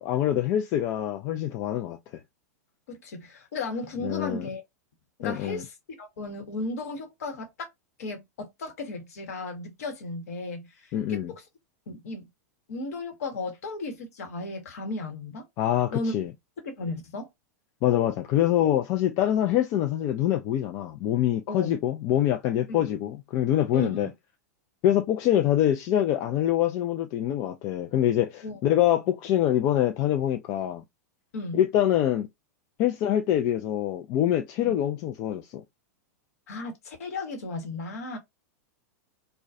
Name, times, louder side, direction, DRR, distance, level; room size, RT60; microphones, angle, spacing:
voice 1, 0.0-2.0 4.0-4.5 5.2-5.6 10.9-11.3 15.6-16.3 17.8-24.1 24.8-30.8 31.5-32.3 32.8-35.4, left 11 dB, 40° left, 0.3 m, -25 dB
voice 2, 2.9-4.6 5.2-7.7 8.0-11.4 11.9-12.2 12.7-15.4 15.9-16.1 16.6-17.3 21.5-21.8 22.7-22.8 23.7-24.1 28.4-28.6 31.3-31.6 34.6-34.7 36.5-38.2, left 2 dB, 65° left, 1.0 m, -35 dB
2.3 x 2.1 x 2.5 m
hypercardioid pair, 100°, 9 cm